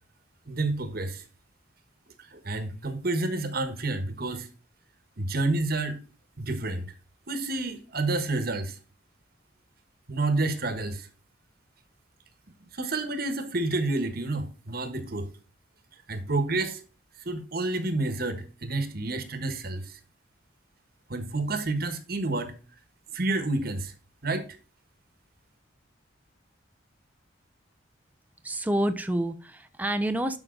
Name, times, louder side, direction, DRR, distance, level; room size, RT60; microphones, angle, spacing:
voice 1, 0.5-1.2 2.3-4.5 5.2-6.0 6.4-6.9 7.3-8.8 10.1-11.1 12.6-15.3 16.1-16.8 17.2-20.0 21.1-22.5 23.1-23.9 24.2-24.5, right 2 dB, 50° right, 1.4 m, -29 dB
voice 2, 28.4-30.4, right 1 dB, 10° right, 0.8 m, -28 dB
11.5 x 5.8 x 3.9 m
head